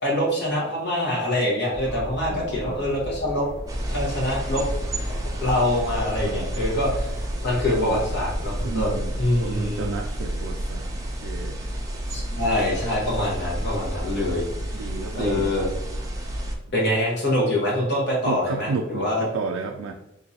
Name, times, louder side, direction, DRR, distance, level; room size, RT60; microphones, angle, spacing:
voice 1, 0.0-3.5 3.9-4.6 5.4-7.1 7.4-9.9 12.1-14.5 14.8-14.9 15.1-15.7 16.7-19.3, left 1 dB, 55° left, -4 dB, 1.2 m, -25 dB
sound 1, 1.7-8.7, equal, 5° left, 0.8 m, -36 dB
voice 2, 2.3-2.8 6.2-6.5 7.7-8.1 8.6-9.2 9.4-11.6 14.7-15.5 18.3-19.9, right 4 dB, 85° right, 3 dB, 0.3 m, -32 dB
sound 2, 3.7-16.6, right 1 dB, 15° right, 0.5 m, -30 dB
3.8 x 2.6 x 2.7 m, 0.85 s
head